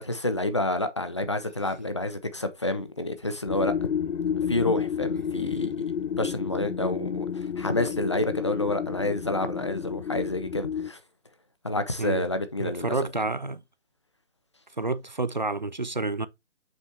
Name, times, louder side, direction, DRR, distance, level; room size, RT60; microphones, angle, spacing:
voice 1, 0.0-3.7 4.5-5.7 6.2-11.0 11.6-13.3, left 2 dB, 25° left, 0.6 m, -29 dB
sound 1, 3.5-10.9, left 7 dB, 75° left, 0.6 m, -31 dB
voice 2, 12.6-13.6 14.8-16.3, right 3 dB, 40° right, 0.5 m, -29 dB
7.3 x 5.6 x 3.3 m
figure-of-eight pair, 165°, 37 cm